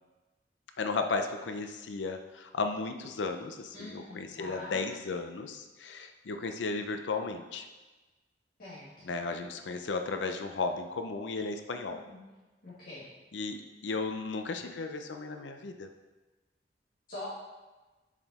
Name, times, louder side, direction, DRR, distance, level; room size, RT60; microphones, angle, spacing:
voice 1, 0.8-7.7 9.0-12.0 13.3-15.9, left 3 dB, 75° left, 6 dB, 0.5 m, -35 dB
voice 2, 3.7-4.8 8.6-9.1 11.9-12.2 12.6-13.1 17.1-17.2, left 2 dB, 55° left, -11 dB, 1.9 m, -44 dB
7.1 x 5.0 x 4.1 m, 1.2 s
head